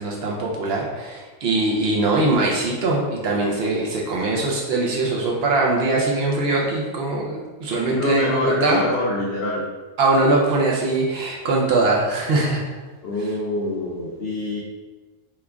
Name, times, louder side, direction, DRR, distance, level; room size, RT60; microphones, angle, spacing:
voice 1, 0.0-8.8 10.0-12.6, right 2 dB, 65° right, -2 dB, 0.6 m, -21 dB
voice 2, 7.8-9.7 13.0-14.6, left 2 dB, 70° left, -4 dB, 0.6 m, -25 dB
3.0 x 2.3 x 3.4 m, 1.3 s
omnidirectional pair, 1.5 m